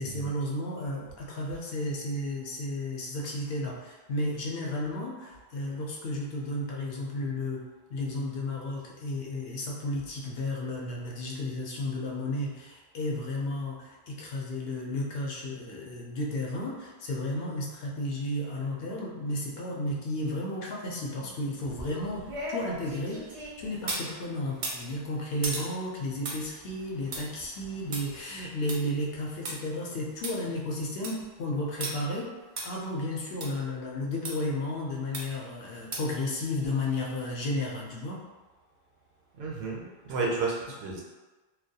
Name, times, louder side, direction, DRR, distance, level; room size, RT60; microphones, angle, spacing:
voice 1, 0.0-32.3 32.6-38.2, left 1 dB, 70° left, -3 dB, 0.8 m, -33 dB
sound 1, 21.6-24.1 24.5-29.5 29.9-30.0 30.2-30.3 30.8-31.2 31.8-31.9 32.6-32.7 33.4-33.5 34.2-34.3 35.1-35.5 35.9-36.2 36.6-36.7, right 2 dB, 50° right, 0.4 m, -37 dB
voice 2, 39.4-41.0, right 3 dB, 75° right, -2 dB, 0.8 m, -32 dB
2.2 x 2.2 x 2.7 m, 1.2 s
omnidirectional pair, 1.1 m